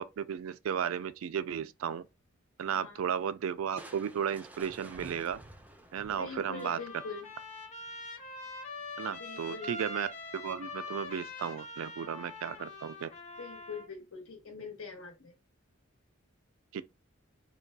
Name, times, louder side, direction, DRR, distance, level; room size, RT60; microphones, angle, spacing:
voice 1, 0.0-2.1 2.6-5.4 5.9-6.8 9.0-10.1 10.3-13.1 16.7-16.8, right 8 dB, 75° right, 0.3 m, -34 dB
voice 2, 2.7-3.1 6.1-7.3 9.1-9.8 13.4-15.3, left 4 dB, 80° left, 1.2 m, -44 dB
Crushing, 3.8-7.1, right 1 dB, 10° right, 0.4 m, -51 dB
Trumpet, 6.3-13.9, left 2 dB, 35° left, 0.9 m, -44 dB
3.9 x 2.3 x 2.2 m
head